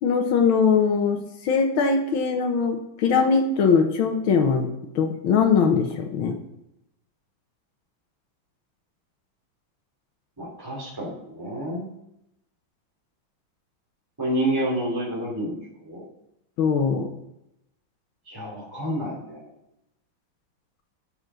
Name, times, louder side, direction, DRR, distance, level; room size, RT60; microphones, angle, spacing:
voice 1, 0.0-1.2 1.4-4.7 5.0-6.4 16.6-17.1, left 5 dB, 80° left, 3 dB, 1.9 m, -21 dB
voice 2, 10.4-11.9 14.2-16.0 18.3-19.5, right 1 dB, 10° right, -6 dB, 3.0 m, -29 dB
11.0 x 6.8 x 6.2 m, 0.83 s
omnidirectional pair, 2.2 m